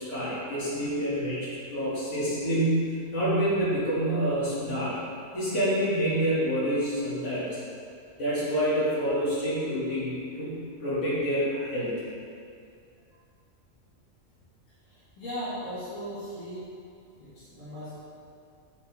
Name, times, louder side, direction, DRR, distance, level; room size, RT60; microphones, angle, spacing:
voice 1, 0.0-5.0 5.3-7.6 8.2-11.9, equal, 70° left, -11 dB, 2.5 m, -27 dB
voice 2, 14.8-16.7 17.2-18.0, equal, 90° left, -12 dB, 2.3 m, -38 dB
8.2 x 5.7 x 3.5 m, 2.4 s
omnidirectional pair, 1.3 m